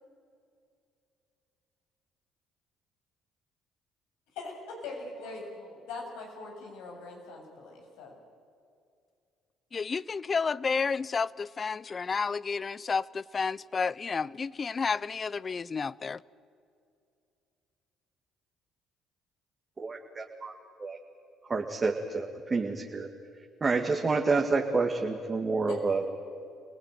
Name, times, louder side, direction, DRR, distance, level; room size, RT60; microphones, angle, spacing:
voice 1, 4.3-8.1 25.6-25.8, left 3 dB, 85° left, 7.4 m, -42 dB
voice 2, 9.7-16.2, left 5 dB, 35° left, 0.6 m, -31 dB
voice 3, 19.8-20.5 20.8-21.0 21.5-23.1 23.6-26.0, right 3 dB, 30° right, 2.2 m, -28 dB
27.0 x 18.5 x 9.4 m
supercardioid pair, 75°, 0 cm